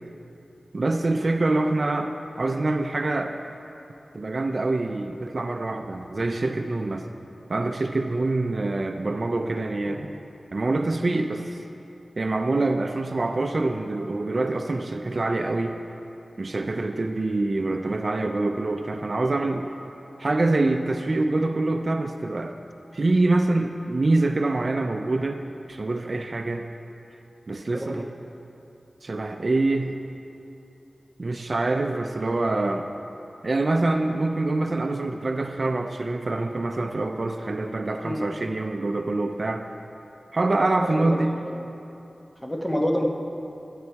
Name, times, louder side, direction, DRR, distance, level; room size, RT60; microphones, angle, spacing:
voice 1, 0.7-3.3 4.1-7.1 7.5-10.1 10.5-11.6 12.2-15.8 16.4-19.7 20.2-22.6 22.9-25.4 25.7-26.7 27.5-28.1 29.0-30.0 31.2-32.9 33.4-39.6 40.3-41.3, right 2 dB, 55° right, 5 dB, 0.5 m, -25 dB
voice 2, 27.7-28.0 38.0-38.2 40.8-41.6 42.4-43.0, equal, 5° left, 0 dB, 1.3 m, -28 dB
12.5 x 9.5 x 4.7 m, 2.8 s
wide cardioid pair, 60°, 0 cm